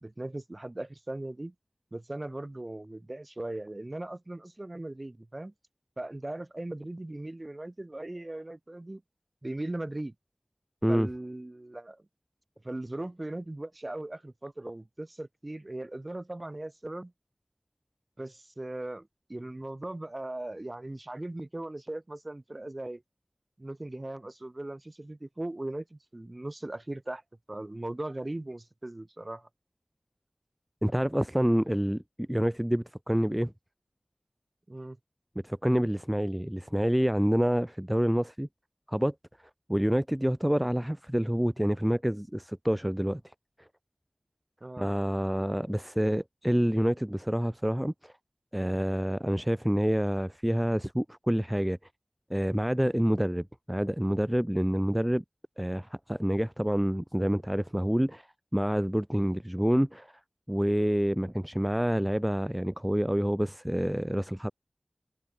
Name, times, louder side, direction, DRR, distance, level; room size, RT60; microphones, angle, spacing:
voice 1, 0.0-1.5 1.9-5.5 6.0-9.0 9.4-10.1 10.9-12.0 12.6-17.1 18.2-23.0 23.6-27.2 27.5-29.5 34.7-35.0 44.6-44.9, right 1 dB, 35° right, 1.4 m, -38 dB
voice 2, 30.8-33.5 35.4-38.5 38.9-39.1 39.7-43.2 43.6-43.7 44.8-48.1 48.5-51.8 52.3-55.2 55.6-58.3 58.5-60.2 60.5-64.5, equal, 10° right, 0.5 m, -27 dB
wide cardioid pair, 50°, 0 cm